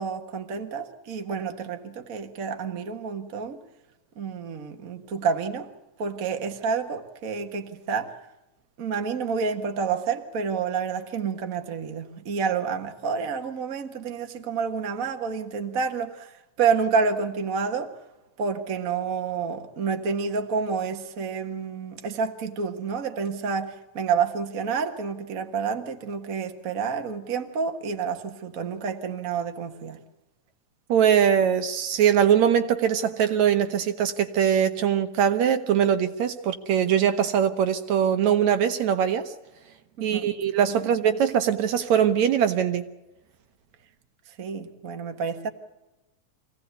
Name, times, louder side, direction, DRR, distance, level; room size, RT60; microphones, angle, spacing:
voice 1, 0.0-3.6 4.2-5.7 6.0-8.1 8.8-16.3 16.6-17.9 18.4-30.0 40.0-40.3 40.8-40.9 44.4-45.5, right 5 dB, 50° right, 1.0 m, -29 dB
voice 2, 30.9-39.3 40.0-42.9, right 8 dB, 65° right, 2.1 m, -22 dB
25.5 x 17.0 x 8.1 m
omnidirectional pair, 3.8 m